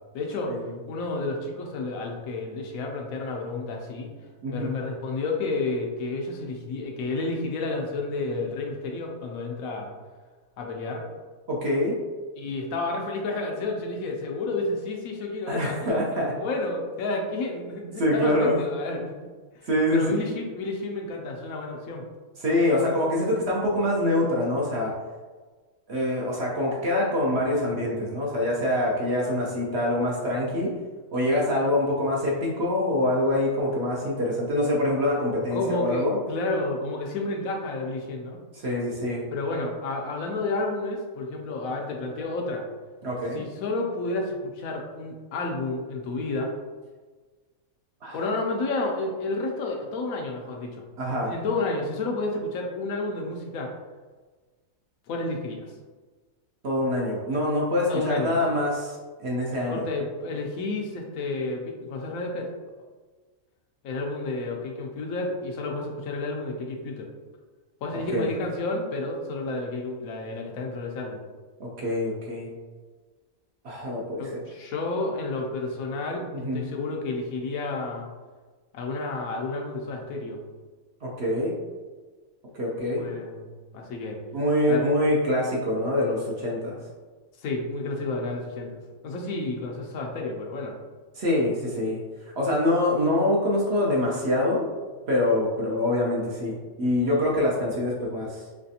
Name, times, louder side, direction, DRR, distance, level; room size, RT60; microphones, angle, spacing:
voice 1, 0.1-0.5 0.9-4.1 4.5-9.9 10.6-11.1 12.4-19.2 19.5-22.1 35.5-38.4 39.3-42.6 43.3-46.5 48.1-50.9 51.3-53.7 55.1-55.7 57.9-58.4 59.7-62.5 63.8-67.1 67.8-71.2 74.2-78.1 78.7-80.4 83.0-83.4 83.7-84.2 84.7-84.9 87.4-90.7, left 2 dB, 75° left, 1 dB, 1.0 m, -31 dB
voice 2, 4.4-4.7 11.5-12.0 15.5-16.4 18.0-18.6 19.7-20.1 22.4-24.9 25.9-30.7 31.1-36.2 38.5-39.3 43.0-43.4 48.0-48.2 51.0-51.3 56.6-59.9 67.9-68.3 71.6-72.5 73.6-74.4 76.3-76.6 81.0-81.5 82.5-83.0 84.3-86.8 91.2-92.0 92.4-94.7 95.1-98.4, left 1 dB, 55° right, -4 dB, 0.8 m, -25 dB
3.3 x 3.1 x 2.7 m, 1.3 s
omnidirectional pair, 1.5 m